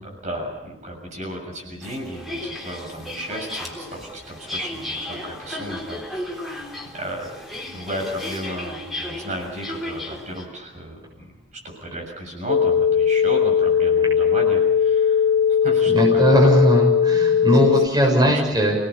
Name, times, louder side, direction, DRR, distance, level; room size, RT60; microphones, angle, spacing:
voice 1, 0.0-6.5 6.9-7.3 7.7-11.3 11.8-16.5 17.5-17.8 18.2-18.4, equal, 40° right, 1 dB, 6.9 m, -34 dB
sound 1, 1.8-10.4, left 1 dB, ahead, 3.7 m, -34 dB
sound 2, 12.5-17.9, left 7 dB, 75° left, 0.9 m, -18 dB
voice 2, 15.9-18.8, equal, 20° right, -1 dB, 6.7 m, -18 dB
29.0 x 18.5 x 7.1 m, 0.97 s
head